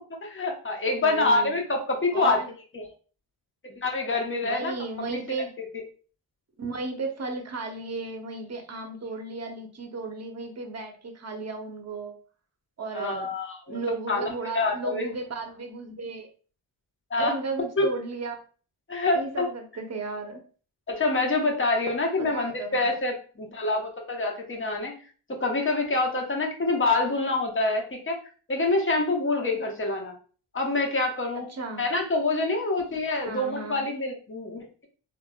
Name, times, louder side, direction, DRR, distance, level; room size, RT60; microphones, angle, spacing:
voice 1, 0.1-2.4 2.7-2.9 3.6-4.7 5.3-5.8 12.9-13.8 14.1-14.3 14.5-15.1 17.1-17.4 17.8-17.9 18.9-19.5 20.9-24.9 25.3-28.2 28.5-30.1 30.5-31.5 31.8-34.9, left 2 dB, 25° left, 1 dB, 0.9 m, -26 dB
voice 2, 1.0-1.5 2.1-2.5 4.4-5.5 6.6-12.1 12.8-13.3 13.7-16.3 17.2-18.4 19.1-20.4 22.2-22.9 31.3-31.8 33.2-33.8, right 3 dB, 30° right, 3 dB, 0.8 m, -34 dB
3.4 x 2.0 x 2.2 m, 0.40 s
supercardioid pair, 40°, 49 cm